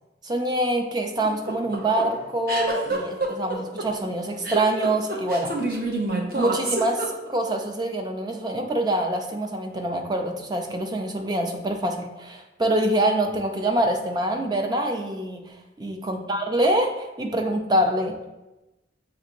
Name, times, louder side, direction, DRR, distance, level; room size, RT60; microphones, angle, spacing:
voice 1, 0.2-5.5 6.3-15.4 15.8-18.1, right 1 dB, 20° right, 4 dB, 0.4 m, -25 dB
sound 1, 1.2-7.5, right 2 dB, 50° right, 0.7 m, -28 dB
6.6 x 2.5 x 2.9 m, 1.0 s
head